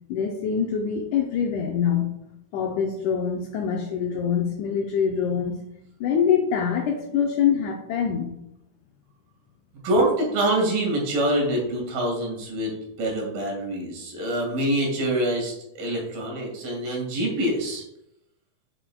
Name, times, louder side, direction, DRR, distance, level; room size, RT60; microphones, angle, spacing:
voice 1, 0.1-2.2 2.5-5.6 6.0-8.4, left 7 dB, 90° left, 1 dB, 1.7 m, -24 dB
voice 2, 9.8-17.8, right 1 dB, 75° right, -1 dB, 3.7 m, -25 dB
7.8 x 7.7 x 2.3 m, 0.83 s
omnidirectional pair, 4.3 m